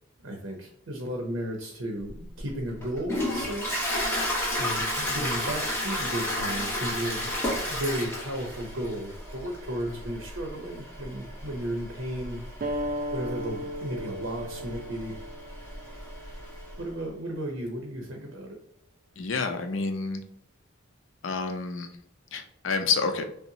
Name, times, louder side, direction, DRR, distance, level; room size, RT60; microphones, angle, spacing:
voice 1, 0.2-3.7 4.6-7.3 7.6-12.4 13.1-15.2 16.8-18.6, right 1 dB, 85° right, 1 dB, 0.7 m, -34 dB
Toilet flush, 2.1-16.8, left 1 dB, 15° left, 1.0 m, -33 dB
sound 1, 12.6-17.7, equal, 45° right, 0.3 m, -37 dB
voice 2, 19.2-20.2 21.2-21.9 22.3-23.2, left 4 dB, 75° left, 6 dB, 0.5 m, -28 dB
5.5 x 2.1 x 2.7 m, 0.68 s
head